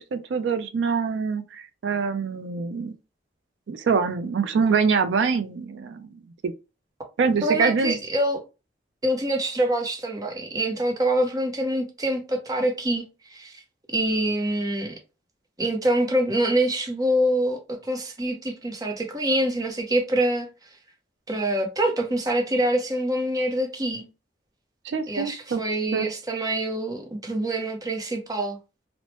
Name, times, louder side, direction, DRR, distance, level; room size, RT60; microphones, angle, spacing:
voice 1, 0.0-2.9 3.7-6.1 6.4-6.5 7.2-8.0 24.8-25.6 25.9-26.1, right 5 dB, 90° right, 0.4 m, -24 dB
voice 2, 7.4-8.4 9.0-13.0 13.3-13.6 13.9-15.0 15.6-20.5 21.3-24.1 25.1-28.6, right 1 dB, 20° right, 0.6 m, -25 dB
3.0 x 2.0 x 2.9 m
head